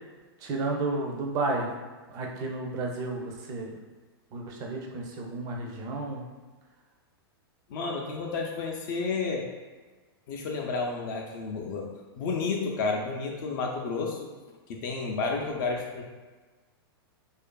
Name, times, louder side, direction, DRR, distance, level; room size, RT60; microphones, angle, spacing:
voice 1, 0.4-1.7 2.1-3.8 4.3-6.3, right 2 dB, 30° right, 0 dB, 0.4 m, -32 dB
voice 2, 7.7-9.4 10.3-11.9 12.2-14.2 14.7-16.0, left 4 dB, 50° left, 0 dB, 0.4 m, -31 dB
2.7 x 2.4 x 2.2 m, 1.3 s
hypercardioid pair, 140°, 13 cm